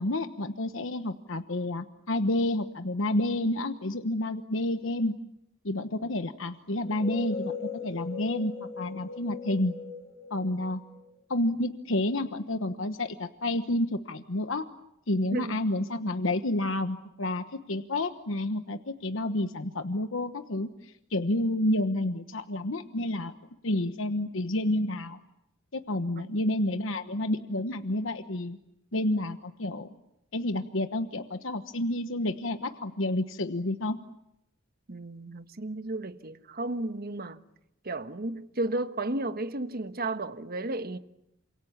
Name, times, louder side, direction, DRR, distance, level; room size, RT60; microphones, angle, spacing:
voice 1, 0.0-5.1 5.6-9.7 10.3-10.8 11.3-14.6 15.1-23.3 23.6-25.2 25.7-28.6 28.9-29.9 30.3-34.0, left 1 dB, 80° left, 1.2 m, -30 dB
sound 1, 6.8-11.4, left 4 dB, 30° left, 4.6 m, -39 dB
voice 2, 15.3-15.6 26.2-26.4 34.9-37.4 37.8-41.0, right 2 dB, 50° right, 1.4 m, -33 dB
28.0 x 27.0 x 7.3 m
head